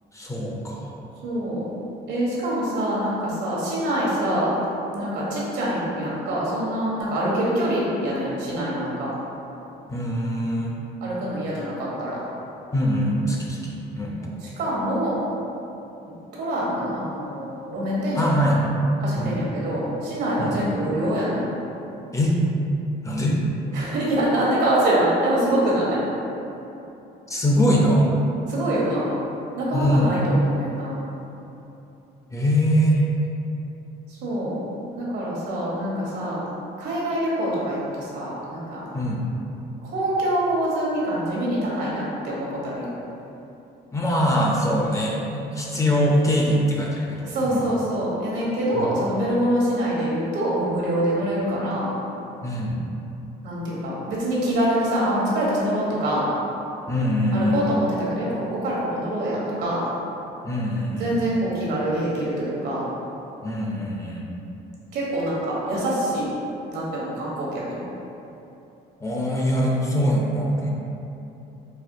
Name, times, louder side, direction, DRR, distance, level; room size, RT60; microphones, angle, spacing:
voice 1, 0.1-0.9 9.9-10.7 12.7-14.2 18.2-18.7 19.2-19.4 20.4-20.6 22.1-22.4 23.0-23.3 27.3-28.1 29.7-30.1 32.3-33.3 38.9-39.2 43.9-47.6 48.7-48.9 52.4-52.8 56.9-57.6 60.4-61.2 63.4-64.2 69.0-70.7, equal, 20° left, -3 dB, 0.4 m, -23 dB
voice 2, 1.2-1.7 2.1-4.6 4.9-9.1 11.0-12.2 14.2-15.2 16.3-18.2 19.0-21.4 23.7-26.0 28.5-29.2 29.6-31.0 34.1-34.6 34.9-36.4 36.8-38.8 39.8-42.9 47.2-51.9 53.4-56.3 57.3-59.8 61.0-62.8 64.9-66.3 66.7-67.8, right 1 dB, 80° right, -6 dB, 1.0 m, -25 dB
4.1 x 2.2 x 2.6 m, 2.9 s
cardioid pair, 110°, 17 cm